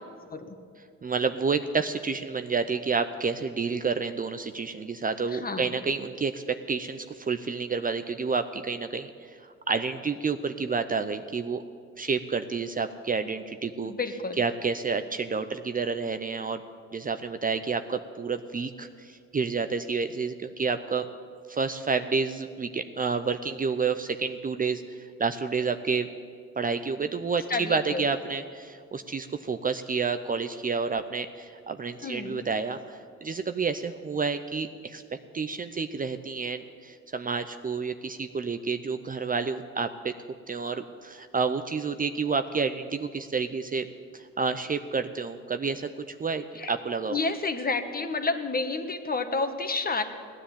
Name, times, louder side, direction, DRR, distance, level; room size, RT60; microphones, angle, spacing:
voice 1, 1.0-11.6 12.0-13.9 14.4-16.6 16.9-21.1 21.5-26.1 26.6-40.1 40.5-43.9 44.1-47.2, right 5 dB, 30° right, 9 dB, 0.6 m, -29 dB
voice 2, 5.3-5.7 13.8-14.4 27.5-28.0 32.0-32.4 46.6-46.7 47.1-50.0, left 3 dB, 30° left, 7 dB, 1.4 m, -30 dB
16.5 x 10.5 x 8.5 m, 2.3 s
cardioid pair, 90°, 30 cm